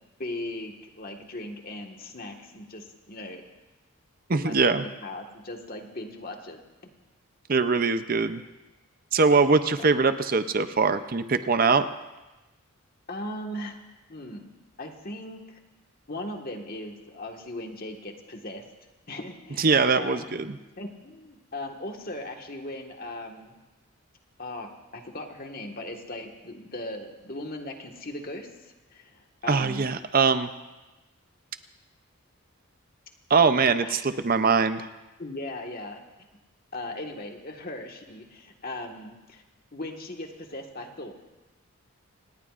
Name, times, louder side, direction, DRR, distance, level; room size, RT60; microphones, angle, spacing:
voice 1, 0.2-3.4 4.3-6.6 9.3-9.4 9.8-9.9 13.1-13.7 14.1-14.5 14.8-15.6 16.1-18.6 19.1-20.4 20.8-23.6 24.4-29.9 33.8-34.0 35.2-36.0 36.7-39.4 39.7-41.1, left 1 dB, 40° left, 2 dB, 1.6 m, -38 dB
voice 2, 4.3-4.8 7.5-8.4 9.1-11.9 19.6-20.6 29.5-30.5 33.3-34.9, right 4 dB, 40° right, 10 dB, 0.6 m, -22 dB
27.5 x 19.0 x 2.5 m, 1.1 s
head